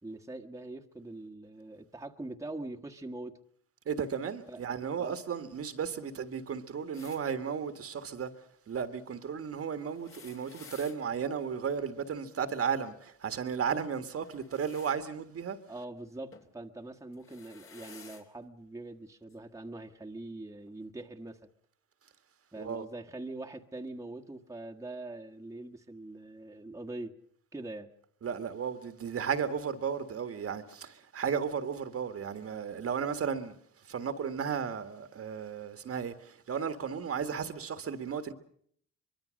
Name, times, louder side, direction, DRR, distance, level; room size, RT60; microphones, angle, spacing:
voice 1, 0.0-3.4 4.5-4.6 5.0-5.2 15.7-21.5 22.5-27.2 27.5-27.9, right 2 dB, 10° right, 1.6 m, -43 dB
voice 2, 3.8-8.3 8.7-15.6 22.6-22.8 28.2-33.5 33.9-38.3, right 7 dB, 50° right, 1.7 m, -34 dB
sound 1, 6.9-7.2 9.8-11.0 14.2-15.0 16.3-16.5 17.1-18.3 19.3-19.4 20.6-20.7, left 5 dB, 45° left, 3.3 m, -53 dB
24.0 x 22.5 x 6.4 m
cardioid pair, 90°, 30 cm